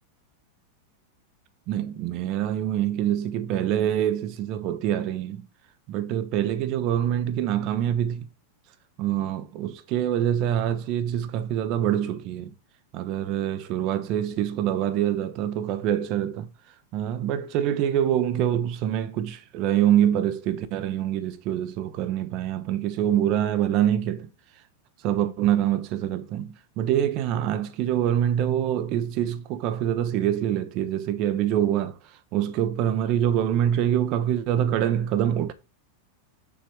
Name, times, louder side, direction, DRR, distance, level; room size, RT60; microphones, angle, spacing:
voice 1, 1.7-5.4 5.9-8.3 9.0-12.5 12.9-16.5 16.9-24.3 25.0-31.9 32.3-35.5, right 10 dB, 40° right, 0.9 m, -25 dB
7.3 x 5.5 x 4.7 m
figure-of-eight pair, 90°, 0 cm